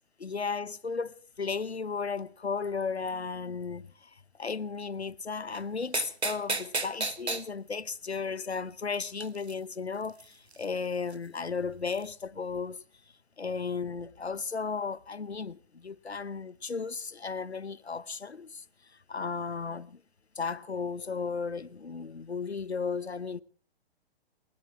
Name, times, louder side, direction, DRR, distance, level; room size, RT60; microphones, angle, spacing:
voice 1, 0.2-12.8 13.4-18.6 19.1-20.0 20.4-23.4, left 5 dB, 85° left, 0.9 m, -35 dB
sound 1, 5.6-5.7 5.9-7.4 9.2-9.5 10.2-10.3 10.5-10.7 11.1-11.2 11.9-12.0, right 3 dB, 85° right, 1.5 m, -31 dB
28.5 x 13.5 x 3.5 m
figure-of-eight pair, 115°, 32 cm